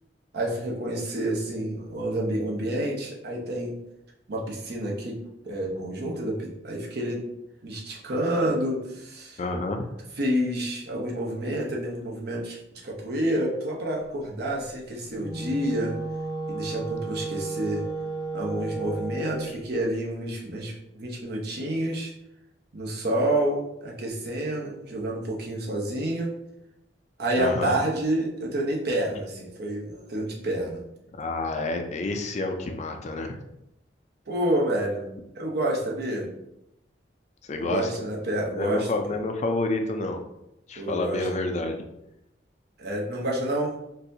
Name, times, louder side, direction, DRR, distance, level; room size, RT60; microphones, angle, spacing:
voice 1, 0.3-3.8 4.3-5.2 5.4-7.2 7.6-9.4 10.2-15.9 16.5-17.8 18.3-22.1 22.7-26.3 27.2-30.8 34.3-35.1 35.3-36.3 37.5-38.9 40.8-41.3 42.8-43.8, right 1 dB, 65° right, -1 dB, 0.8 m, -28 dB
voice 2, 9.4-9.8 27.4-27.7 31.2-33.4 37.5-37.9 38.6-40.2 40.7-41.8, left 2 dB, 40° left, 5 dB, 0.4 m, -28 dB
Wind instrument woodwind instrument, 15.1-19.6, right 3 dB, 20° right, 0.5 m, -33 dB
4.0 x 2.6 x 2.6 m, 0.85 s
head